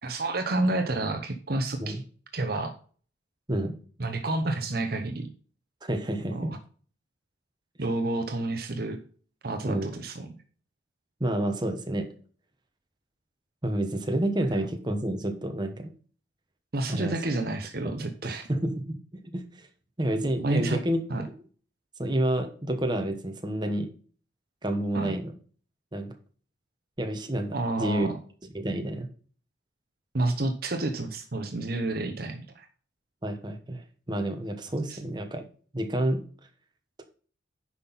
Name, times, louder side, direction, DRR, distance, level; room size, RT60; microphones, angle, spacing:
voice 1, 0.0-2.0 2.3-2.7 4.0-5.3 6.2-6.6 7.8-9.0 9.4-10.3 16.7-18.5 20.4-20.8 21.1-21.3 24.9-25.1 27.5-28.2 30.1-32.7 34.9-35.0, right 2 dB, 50° right, 6 dB, 0.9 m, -30 dB
voice 2, 5.8-6.6 9.6-9.9 11.2-12.1 13.6-15.9 16.9-17.1 18.2-19.0 19.3-19.7 20.0-21.0 22.0-23.9 24.6-25.3 25.9-26.1 27.0-28.1 28.5-29.1 33.2-35.4 35.7-36.2, right 1 dB, 25° right, 5 dB, 1.2 m, -29 dB
9.7 x 5.8 x 4.1 m, 0.42 s
head